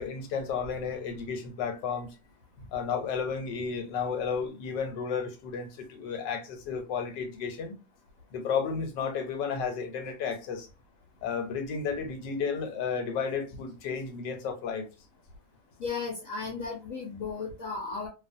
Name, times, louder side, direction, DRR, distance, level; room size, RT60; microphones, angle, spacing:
voice 1, 0.0-2.1 2.7-7.7 8.3-10.7 11.2-14.9, left 6 dB, 85° left, 1.4 m, -32 dB
voice 2, 15.8-18.1, left 4 dB, 60° left, 1.0 m, -35 dB
2.6 x 2.4 x 2.6 m
omnidirectional pair, 1.9 m